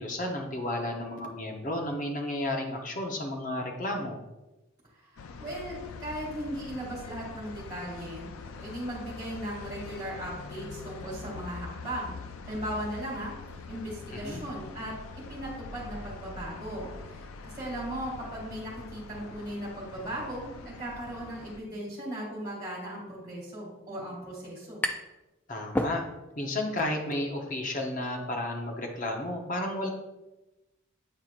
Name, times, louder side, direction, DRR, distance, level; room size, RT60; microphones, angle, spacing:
voice 1, 0.0-4.2 14.1-14.4 25.5-26.0 26.4-29.9, left 1 dB, 40° left, 1 dB, 0.8 m, -32 dB
voice 2, 5.0-8.3 8.6-13.3 13.7-24.8, right 1 dB, 20° right, -5 dB, 2.2 m, -37 dB
sound 1, 5.2-21.6, left 4 dB, 80° left, 0.4 m, -44 dB
sound 2, 24.2-25.2 25.5-26.5, left 1 dB, 10° left, 0.3 m, -32 dB
8.7 x 4.6 x 2.5 m, 1.0 s
head